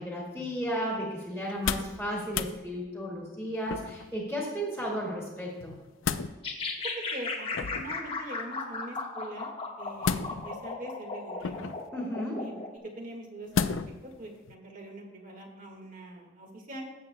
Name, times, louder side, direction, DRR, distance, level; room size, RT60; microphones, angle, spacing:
voice 1, 0.0-5.7 11.9-12.5, equal, ahead, -4 dB, 2.0 m, -34 dB
sound 1, 1.4-2.0 2.3-2.6 3.7-4.1 5.6-6.3 7.5-8.0 10.0-10.6 11.4-11.9 13.5-14.0 14.5-14.6, left 6 dB, 75° left, 0.5 m, -32 dB
sound 2, 6.4-12.7, left 3 dB, 30° left, 1.0 m, -36 dB
voice 2, 7.1-11.7 12.4-12.5 13.0-13.7 14.0-16.8, right 1 dB, 40° right, 1 dB, 1.7 m, -43 dB
17.0 x 7.5 x 2.2 m, 1.2 s
head